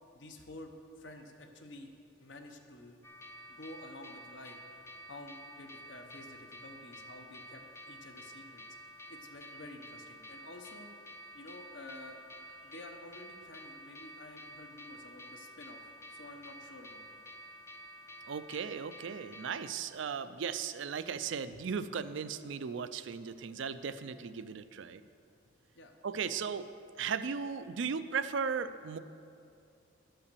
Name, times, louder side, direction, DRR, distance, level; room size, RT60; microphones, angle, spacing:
voice 1, 0.1-3.0 3.5-4.6 5.1-8.6 9.1-10.9 11.3-12.2 12.6-15.8 16.1-17.0 25.7-26.4, left 2 dB, 65° left, 5 dB, 0.9 m, -50 dB
sound 1, 3.0-19.7, equal, 15° left, 0.5 m, -51 dB
voice 2, 18.3-25.0 26.0-26.7 27.0-29.0, right 6 dB, 70° right, 13 dB, 0.4 m, -36 dB
11.5 x 5.7 x 6.7 m, 2.5 s
head